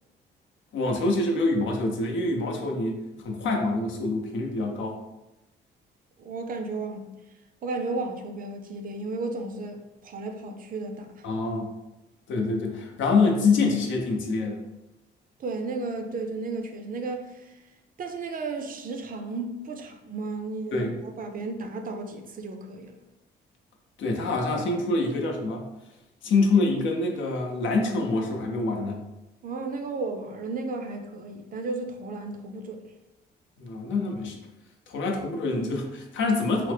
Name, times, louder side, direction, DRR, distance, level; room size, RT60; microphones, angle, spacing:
voice 1, 0.7-5.0 11.2-11.7 12.3-14.6 20.7-21.0 24.0-25.6 26.2-29.0 33.6-34.4 34.9-36.7, left 3 dB, 75° left, 0.6 m, -26 dB
voice 2, 6.2-7.1 7.6-11.1 15.4-17.6 18.0-20.9 21.2-22.9 29.4-32.8, right 3 dB, 45° right, 0.5 m, -33 dB
3.2 x 2.0 x 3.2 m
cardioid pair, 90°, 20 cm